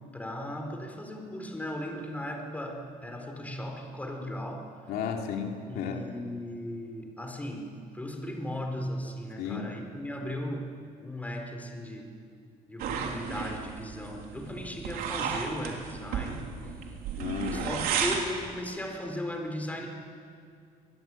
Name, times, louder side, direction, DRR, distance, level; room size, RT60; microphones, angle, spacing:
voice 1, 0.1-4.7 5.7-10.7 11.0-12.1 12.7-16.5 17.5-19.9, left 1 dB, 10° left, 3 dB, 4.2 m, -37 dB
voice 2, 4.9-6.0 9.4-9.7 17.2-17.8, left 7 dB, 90° left, 2 dB, 2.8 m, -33 dB
sound 1, 12.8-18.3, right 6 dB, 85° right, 3.5 m, -33 dB
24.0 x 21.0 x 9.1 m, 2.4 s
cardioid pair, 130°, 15 cm